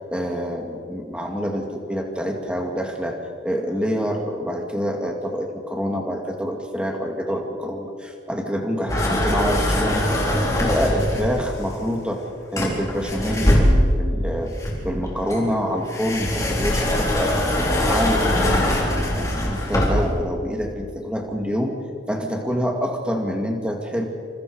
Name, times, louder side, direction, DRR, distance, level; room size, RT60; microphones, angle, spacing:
voice 1, 0.1-3.2 3.4-10.1 10.4-12.2 12.5-14.5 14.8-17.4 17.8-18.7 19.1-21.8 22.1-24.1, equal, 5° right, 2 dB, 2.4 m, -26 dB
sound 1, 8.9-11.5 12.6-14.1 14.6-20.2, left 1 dB, 15° left, 4.1 m, -21 dB
28.0 x 27.5 x 5.1 m, 2.3 s
head